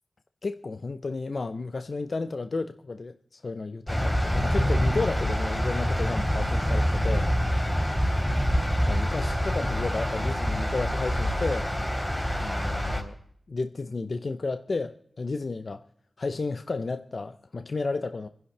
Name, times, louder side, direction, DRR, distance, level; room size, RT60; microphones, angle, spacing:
voice 1, 0.4-7.3 8.9-11.7 12.4-13.1 13.5-15.8 16.2-18.3, left 3 dB, 65° left, 0.7 m, -32 dB
sound 1, 3.9-13.0, equal, 10° left, 3.4 m, -26 dB
26.0 x 10.5 x 3.3 m
cardioid pair, 50°, 0 cm